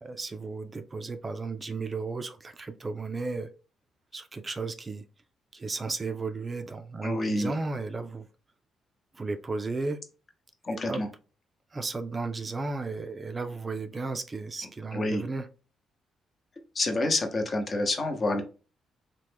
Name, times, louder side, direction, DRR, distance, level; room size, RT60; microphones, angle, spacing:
voice 1, 0.0-3.5 4.1-5.0 5.5-8.3 9.1-10.0 10.7-11.0 11.7-15.5, right 3 dB, 30° right, 0.4 m, -34 dB
voice 2, 7.0-7.5 10.6-11.1 14.9-15.2 16.7-18.4, left 2 dB, 40° left, 0.7 m, -28 dB
3.0 x 2.1 x 3.4 m
cardioid pair, 90°, 0 cm